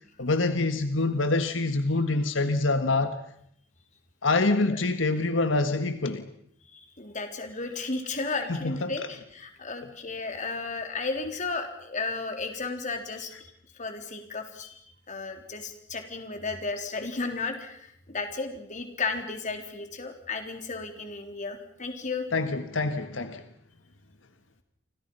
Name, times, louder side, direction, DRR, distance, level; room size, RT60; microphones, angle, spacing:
voice 1, 0.2-3.2 4.2-6.2 8.6-8.9 22.3-23.4, left 3 dB, 85° left, 9 dB, 1.6 m, -25 dB
voice 2, 6.7-13.4 13.7-14.8 15.1-22.3, left 3 dB, 40° left, 5 dB, 3.8 m, -34 dB
30.0 x 25.5 x 5.6 m, 0.70 s
head